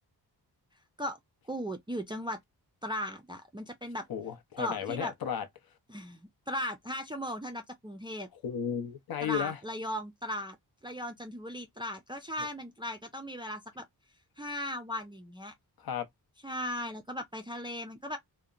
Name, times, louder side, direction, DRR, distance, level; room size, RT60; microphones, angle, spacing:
voice 1, 1.5-2.4 2.8-4.1 4.6-5.1 5.9-6.2 6.5-8.3 9.2-10.6 10.8-13.9 14.4-15.5 16.4-18.2, equal, 15° right, 0.3 m, -37 dB
voice 2, 4.1-5.5 8.3-9.6 15.8-16.1, left 9 dB, 60° left, 0.7 m, -34 dB
2.7 x 2.1 x 2.3 m
wide cardioid pair, 130°, 40 cm